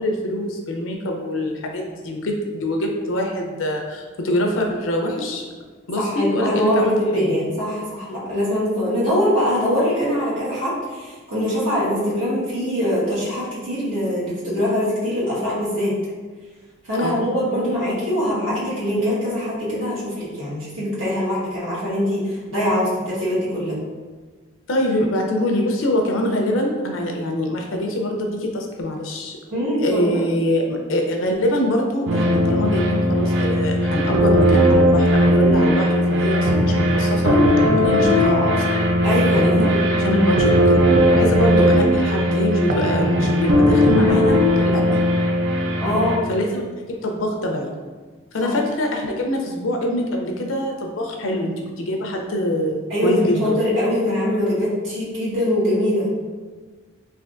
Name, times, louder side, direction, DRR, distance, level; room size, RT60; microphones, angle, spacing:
voice 1, 0.0-5.5 5.9-7.4 17.0-17.2 24.7-29.4 29.8-38.9 39.2-45.0 46.3-46.6 47.0-47.7 48.3-53.5, left 1 dB, 85° left, 2 dB, 0.5 m, -24 dB
voice 2, 6.0-15.9 16.9-23.8 29.5-30.2 39.0-40.2 45.8-46.2 48.4-48.5 52.9-56.1, equal, 85° right, -9 dB, 1.4 m, -23 dB
sound 1, 32.1-46.2, equal, 65° right, 0.4 m, -18 dB
3.4 x 2.7 x 2.5 m, 1.4 s
head